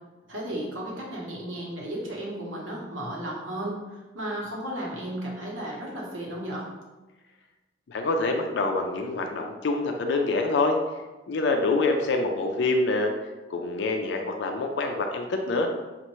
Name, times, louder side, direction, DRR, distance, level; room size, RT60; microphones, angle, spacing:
voice 1, 0.3-6.7, right 1 dB, 85° right, -3 dB, 1.1 m, -34 dB
voice 2, 7.9-10.8 11.3-13.1 13.5-15.7, left 3 dB, 65° left, 3 dB, 0.4 m, -26 dB
5.4 x 2.5 x 3.0 m, 1.2 s
head